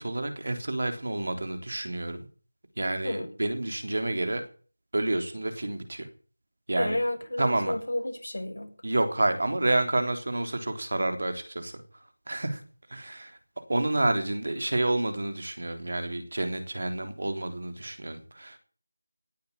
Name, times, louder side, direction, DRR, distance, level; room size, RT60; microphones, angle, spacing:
voice 1, 0.0-2.2 2.8-4.4 4.9-6.1 6.7-7.0 7.4-7.7 8.8-11.7 12.3-12.6 12.9-13.3 13.7-18.6, right 2 dB, 55° right, 7 dB, 3.6 m, -29 dB
voice 2, 6.7-8.7, left 1 dB, 75° left, 2 dB, 7.6 m, -31 dB
18.0 x 8.5 x 8.5 m, 0.42 s
figure-of-eight pair, 175°, 0 cm